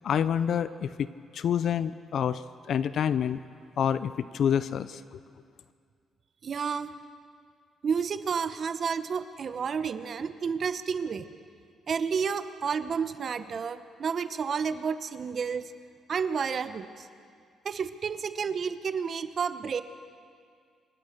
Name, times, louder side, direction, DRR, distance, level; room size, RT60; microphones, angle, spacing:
voice 1, 0.0-3.4 3.8-5.2, left 8 dB, 65° left, 14 dB, 0.6 m, -28 dB
voice 2, 6.4-7.0 7.8-11.3 11.9-15.7 16.1-17.1 17.6-19.8, right 6 dB, 50° right, 12 dB, 0.9 m, -31 dB
26.5 x 15.5 x 6.6 m, 2.2 s
cardioid pair, 90°, 0 cm